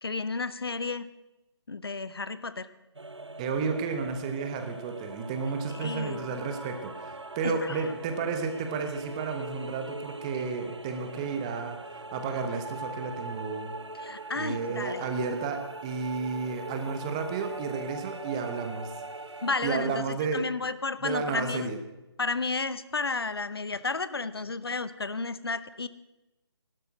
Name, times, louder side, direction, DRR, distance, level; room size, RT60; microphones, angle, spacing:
voice 1, 0.0-1.1 1.7-2.7 5.7-6.3 7.4-7.9 14.0-15.1 19.4-21.7 22.2-25.9, left 4 dB, 60° left, 15 dB, 0.8 m, -32 dB
sound 1, 2.9-19.6, right 2 dB, 80° right, 1.0 m, -42 dB
voice 2, 3.4-13.7 14.4-18.9 19.6-20.5 21.0-21.8, right 5 dB, 15° right, 7 dB, 1.0 m, -32 dB
16.0 x 12.5 x 6.2 m, 1.0 s
figure-of-eight pair, 150°, 14 cm